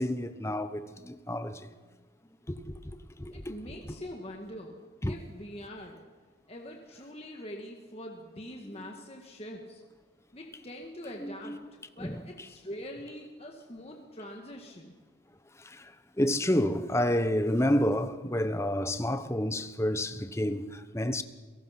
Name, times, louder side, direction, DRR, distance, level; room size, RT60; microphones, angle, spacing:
voice 1, 0.0-1.6 2.5-2.7 3.2-3.7 5.0-5.1 8.7-8.8 11.2-11.6 12.0-12.2 16.2-21.2, left 1 dB, 15° left, 0.9 m, -29 dB
voice 2, 3.3-4.8 5.1-6.0 6.5-9.8 10.3-11.6 12.0-14.9, equal, 30° left, 1.7 m, -43 dB
29.0 x 17.5 x 5.9 m
head